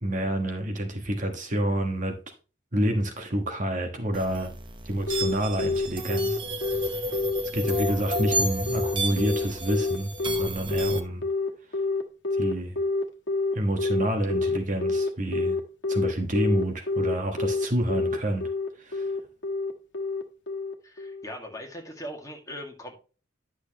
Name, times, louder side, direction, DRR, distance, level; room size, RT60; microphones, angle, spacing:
voice 1, 0.0-2.2 2.7-4.5 4.8-6.4 7.5-11.2 12.4-12.8 13.5-15.6 15.9-18.5 18.8-19.1, right 1 dB, 40° right, 1.3 m, -28 dB
sound 1, 4.1-11.0, right 1 dB, 25° right, 0.9 m, -32 dB
Telephone, 5.1-21.2, left 3 dB, 70° left, 1.4 m, -27 dB
voice 2, 20.8-23.0, equal, 15° left, 1.8 m, -40 dB
10.5 x 6.4 x 3.0 m
head